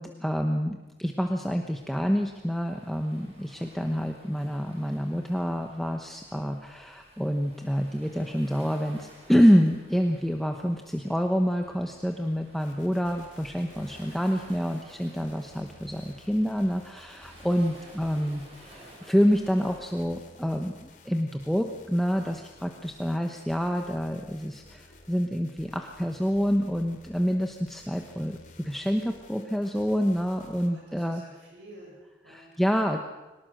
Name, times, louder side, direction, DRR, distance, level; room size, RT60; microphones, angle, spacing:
voice 1, 0.0-31.2 32.3-33.0, equal, ahead, 3 dB, 1.0 m, -27 dB
Waves surf, 1.8-20.1, right 1 dB, 35° right, 5.6 m, -54 dB
sound 1, 12.6-30.7, left 2 dB, 45° left, 2.9 m, -54 dB
voice 2, 17.7-18.2 30.4-32.5, right 1 dB, 80° right, -3 dB, 7.7 m, -51 dB
23.0 x 19.5 x 6.5 m, 1.1 s
head